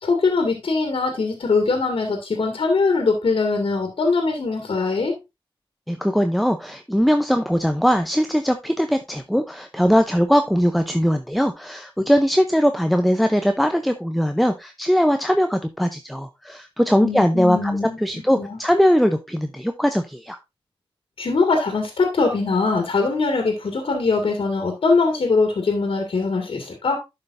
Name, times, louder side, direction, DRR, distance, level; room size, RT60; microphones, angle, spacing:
voice 1, 0.0-5.1 17.0-18.0 18.4-18.6 21.2-27.0, left 4 dB, 80° left, 3 dB, 2.0 m, -22 dB
voice 2, 5.9-17.7 18.0-20.4, equal, ahead, 7 dB, 0.7 m, -20 dB
11.5 x 5.6 x 2.6 m, 0.22 s
wide cardioid pair, 80°, 9 cm